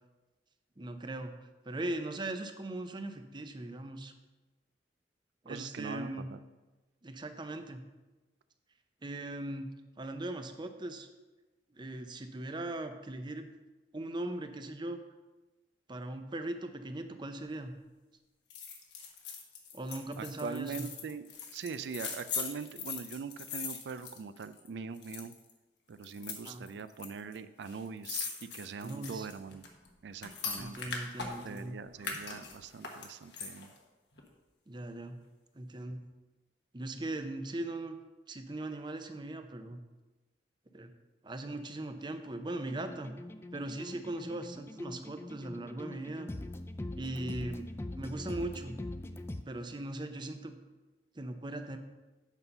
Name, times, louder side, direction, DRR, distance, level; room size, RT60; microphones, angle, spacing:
voice 1, 0.8-1.3 1.6-4.1 5.4-6.3 7.0-7.8 9.0-9.7 10.0-11.1 11.8-13.5 13.9-15.0 15.9-17.7 19.7-20.9 26.4-26.6 28.8-29.3 30.6-31.8 34.7-35.2 35.6-36.0 36.7-38.0 38.3-39.8 40.7-40.9 41.2-43.2 43.5-46.3 47.0-47.7 47.9-48.8 49.5-50.6 51.2-51.8, right 1 dB, 25° right, 7 dB, 0.6 m, -39 dB
voice 2, 5.5-6.4 20.2-21.3 21.5-25.3 25.9-29.6 30.0-30.9 31.4-33.7, right 5 dB, 75° right, 12 dB, 0.4 m, -42 dB
sound 1, 18.5-24.7 25.0-25.5 26.0-27.1 27.3-27.4 27.6-31.6 32.0-33.8 34.2-34.3, left 6 dB, 75° left, 1.3 m, -41 dB
sound 2, 42.7-49.4, left 1 dB, 15° left, 0.3 m, -43 dB
8.2 x 5.5 x 5.5 m, 1.2 s
head